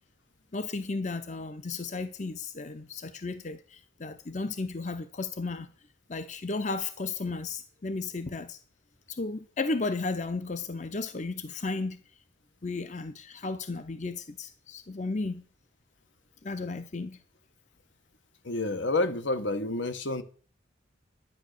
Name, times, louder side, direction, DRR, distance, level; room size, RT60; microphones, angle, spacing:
voice 1, 0.5-5.7 6.1-8.6 9.1-12.0 12.6-15.4 16.4-17.2, left 3 dB, 40° left, 0.7 m, -34 dB
voice 2, 18.4-20.2, left 2 dB, 75° left, 1.3 m, -29 dB
11.0 x 9.1 x 6.6 m
head